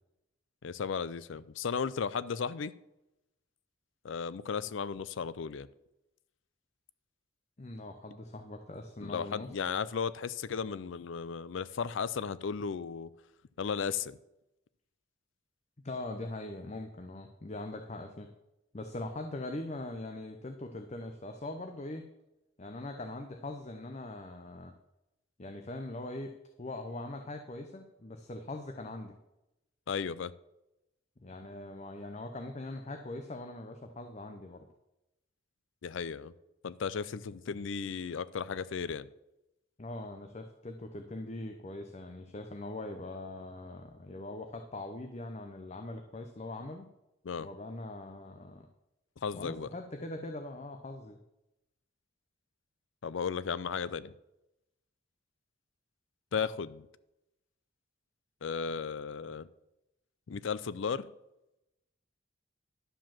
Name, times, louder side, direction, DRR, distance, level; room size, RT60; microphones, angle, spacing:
voice 1, 0.6-2.7 4.0-5.7 9.0-13.1 13.6-14.2 29.9-30.3 35.8-36.3 36.6-39.1 47.2-47.5 49.2-49.7 53.0-54.1 56.3-56.9 58.4-59.5 60.3-61.1, left 6 dB, 75° left, 17 dB, 0.5 m, -35 dB
voice 2, 7.6-9.6 15.8-18.3 18.7-22.0 22.6-24.7 25.4-26.3 26.6-29.1 31.2-34.7 39.8-46.9 47.4-48.7 49.3-51.2, left 2 dB, 35° left, 5 dB, 0.7 m, -41 dB
11.5 x 5.1 x 7.3 m, 0.92 s
head